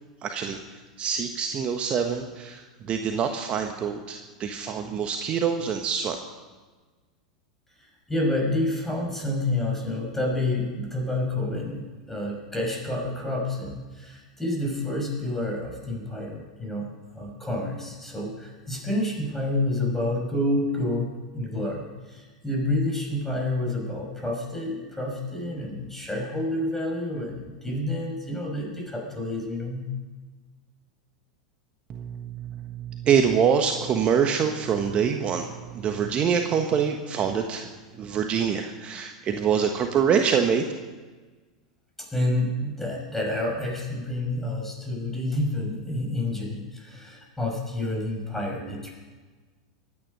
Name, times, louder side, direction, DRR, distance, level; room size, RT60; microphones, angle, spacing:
voice 1, 0.2-0.6 1.0-6.2 31.9-37.7 38.0-40.6, right 7 dB, 35° right, 5 dB, 1.3 m, -25 dB
voice 2, 7.8-21.1 21.3-29.9 42.1-48.9, left 1 dB, 5° left, -1 dB, 6.0 m, -29 dB
24.0 x 9.8 x 5.5 m, 1.3 s
hypercardioid pair, 90°, 3 cm